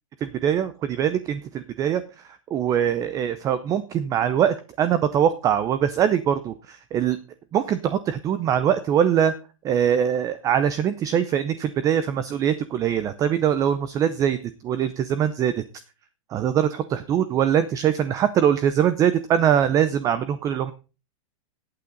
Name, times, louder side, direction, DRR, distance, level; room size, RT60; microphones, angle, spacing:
voice 1, 0.2-7.2 7.5-9.3 9.6-14.4 14.6-15.5 16.3-20.7, right 9 dB, 20° right, 14 dB, 0.6 m, -22 dB
15.5 x 8.7 x 3.9 m, 0.32 s
supercardioid pair, 155°, 18 cm